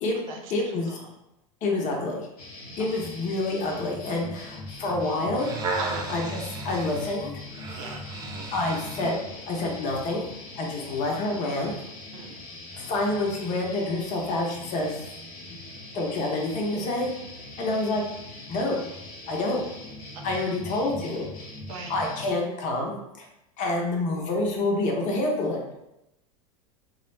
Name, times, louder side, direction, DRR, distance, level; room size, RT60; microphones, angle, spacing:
voice 1, 0.5-1.0 1.6-2.3 2.8-5.5 6.1-7.3 8.5-9.2 9.5-10.3 10.6-11.7 12.8-15.0 15.9-17.1 17.6-18.0 18.5-18.8 19.3-19.7 20.2-21.3 21.9-23.3 23.6-25.6, left 2 dB, 45° left, 0 dB, 0.7 m, -27 dB
sound 1, 2.4-22.3, left 2 dB, 90° left, 0.7 m, -42 dB
sound 2, 5.2-9.2 9.9-10.0, right 3 dB, 20° right, 0.4 m, -34 dB
voice 2, 5.8-6.1 7.8-8.0 12.1-12.3 20.1-20.5 21.7-21.9 23.6-23.7, right 4 dB, 70° right, 2 dB, 0.6 m, -39 dB
2.4 x 2.0 x 3.1 m, 0.88 s
hypercardioid pair, 90°, 19 cm